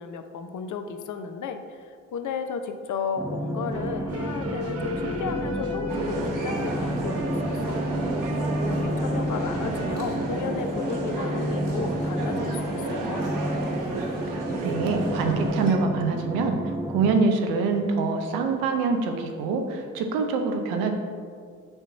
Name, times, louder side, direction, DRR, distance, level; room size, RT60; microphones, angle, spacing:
voice 1, 0.0-7.8 8.7-13.2, left 6 dB, 60° left, 8 dB, 0.7 m, -34 dB
sound 1, 3.2-17.1, equal, 5° right, 0.9 m, -30 dB
sound 2, 3.7-10.0, right 1 dB, 45° right, 0.9 m, -35 dB
sound 3, 5.9-15.7, right 2 dB, 60° right, 1.3 m, -32 dB
voice 2, 14.3-16.6 16.9-20.9, right 4 dB, 85° right, 5 dB, 0.8 m, -25 dB
6.4 x 3.1 x 5.9 m, 2.1 s
hypercardioid pair, 50°, 35 cm